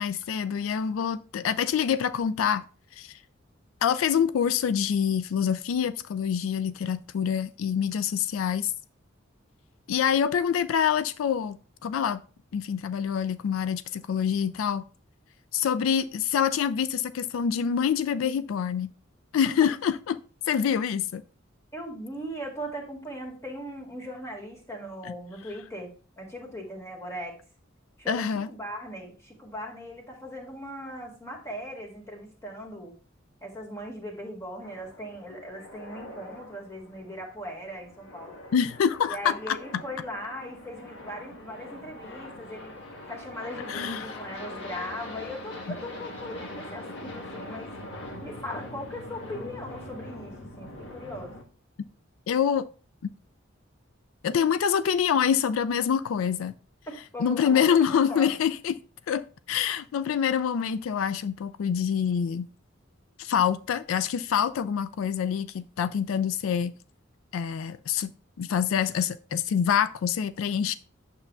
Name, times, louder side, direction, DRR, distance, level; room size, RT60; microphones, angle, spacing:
voice 1, 0.0-2.6 2.9-3.2 3.8-8.7 9.9-12.2 12.5-14.8 15.5-18.9 19.3-20.2 20.5-21.2 25.0-25.1 28.1-28.5 38.5-39.6 43.7-44.2 52.3-52.7 54.2-56.5 57.2-58.8 59.1-62.5 63.2-66.8 67.3-68.1 68.4-70.7, left 8 dB, 90° left, 0.3 m, -26 dB
voice 2, 21.7-27.3 28.0-33.0 33.4-38.4 39.1-42.8 43.1-47.7 48.2-51.4 56.9-58.4, equal, 15° left, 1.9 m, -39 dB
sound 1, 34.6-51.4, left 1 dB, 65° left, 1.5 m, -42 dB
8.9 x 6.8 x 2.3 m
head